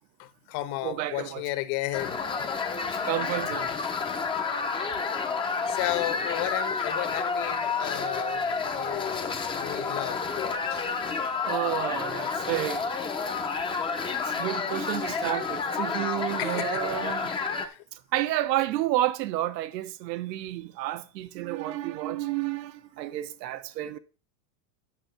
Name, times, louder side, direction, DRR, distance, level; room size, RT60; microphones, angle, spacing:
voice 1, 0.2-2.2 2.8-3.3 3.6-3.7 5.7-10.8 16.4-16.8 17.5-17.8, left 16 dB, 50° left, 1.2 m, -34 dB
voice 2, 0.8-1.4 3.1-3.7 11.4-12.8 14.2-17.3 17.9-24.0, right 14 dB, 85° right, 1.1 m, -30 dB
sound 1, 1.9-17.7, left 5 dB, 10° left, 0.6 m, -30 dB
10.0 x 5.9 x 5.7 m
supercardioid pair, 155°, 49 cm